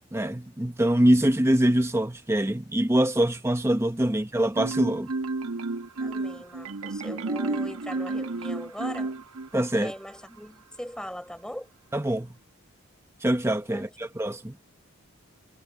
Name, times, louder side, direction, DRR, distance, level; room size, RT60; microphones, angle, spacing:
voice 1, 0.1-5.1 9.5-9.9 11.9-12.3 13.2-14.5, right 1 dB, 10° right, 0.8 m, -24 dB
Marimba xylophone, 4.5-9.7, right 3 dB, 80° right, 1.1 m, -31 dB
voice 2, 6.0-9.2 9.7-11.7 13.7-13.9, equal, 5° left, 4.8 m, -40 dB
head